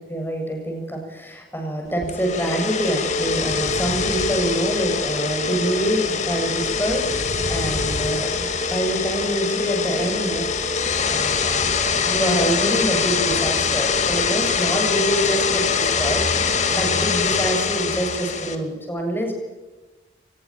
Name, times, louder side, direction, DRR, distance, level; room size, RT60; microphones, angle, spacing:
voice 1, 0.1-10.5 11.1-11.7 12.0-19.3, right 1 dB, 10° left, 2 dB, 7.6 m, -26 dB
sound 1, 2.0-18.6, left 5 dB, 40° left, 2.5 m, -23 dB
23.5 x 21.0 x 9.1 m, 1.2 s
head